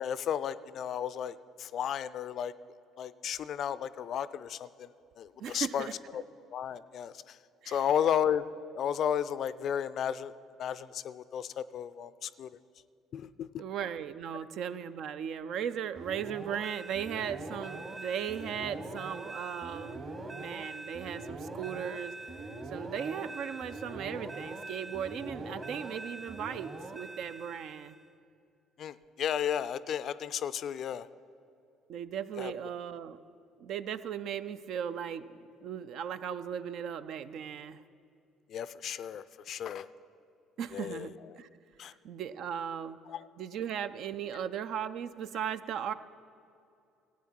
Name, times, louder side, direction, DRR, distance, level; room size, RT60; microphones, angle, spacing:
voice 1, 0.0-2.5 3.0-4.9 5.2-5.9 6.1-6.2 6.5-7.4 7.7-8.5 8.7-10.3 10.6-12.5 13.1-13.5 28.8-31.1 32.4-32.5 38.5-39.9 40.7-41.1 41.8-41.9 43.1-43.3, left 9 dB, 50° left, 16 dB, 0.4 m, -33 dB
voice 2, 5.4-5.9 7.6-7.8 13.6-20.0 20.3-22.1 22.7-28.0 31.9-33.2 33.6-37.8 40.6-41.5 42.0-43.0 43.4-45.9, right 8 dB, 55° right, 13 dB, 0.4 m, -37 dB
sound 1, 16.0-28.1, right 2 dB, 30° right, 1.5 m, -42 dB
17.5 x 8.5 x 4.5 m, 2.6 s
figure-of-eight pair, 50°, 0 cm